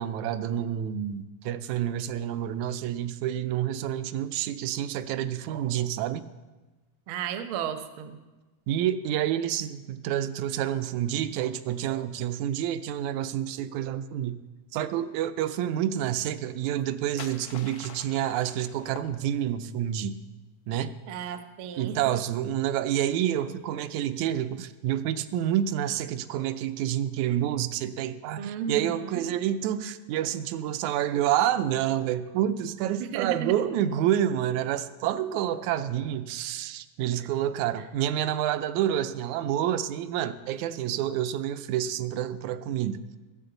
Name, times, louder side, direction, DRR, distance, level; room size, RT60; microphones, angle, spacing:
voice 1, 0.0-6.3 8.7-14.4 14.7-20.2 20.7-20.9 21.8-43.0, right 11 dB, 85° right, 11 dB, 2.0 m, -28 dB
voice 2, 7.1-8.2 21.1-22.0 28.4-29.2 33.0-33.5, right 8 dB, 70° right, 8 dB, 1.3 m, -34 dB
sound 1, 16.7-19.7, left 7 dB, 75° left, 1.1 m, -46 dB
15.0 x 14.0 x 3.9 m, 1.2 s
omnidirectional pair, 3.3 m